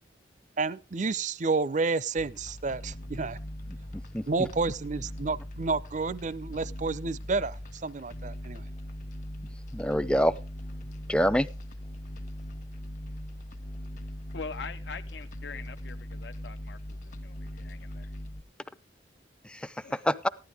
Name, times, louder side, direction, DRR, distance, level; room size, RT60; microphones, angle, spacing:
voice 1, 0.6-3.4 4.3-8.7, right 4 dB, 40° right, 0.5 m, -30 dB
sound 1, 2.2-18.4, left 1 dB, 45° left, 1.2 m, -40 dB
voice 2, 4.1-4.5 9.7-10.3 11.1-11.5 19.4-20.3, equal, 5° left, 0.5 m, -26 dB
voice 3, 14.3-18.1 19.8-20.0, left 5 dB, 65° left, 0.6 m, -43 dB
14.5 x 11.0 x 3.4 m
head